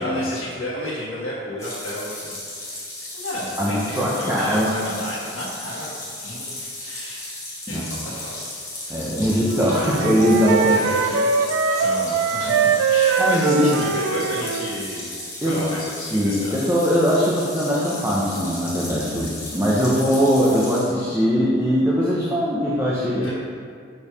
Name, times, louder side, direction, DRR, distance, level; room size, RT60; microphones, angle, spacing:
voice 1, 0.0-2.8 3.1-5.9 6.2-7.3 7.7-8.5 10.6-11.3 11.7-15.1 15.5-16.6 23.2-23.3, equal, 85° left, -8 dB, 1.3 m, -31 dB
sound 1, 1.6-20.8, left 2 dB, 15° left, 1.2 m, -35 dB
voice 2, 3.6-4.8 7.7-7.8 8.9-10.8 13.2-13.7 15.4-15.7 16.1-23.3, equal, 10° right, -7 dB, 0.6 m, -21 dB
Wind instrument woodwind instrument, 9.5-14.7, right 5 dB, 75° right, 0.4 m, -22 dB
5.3 x 4.6 x 4.7 m, 2.2 s
head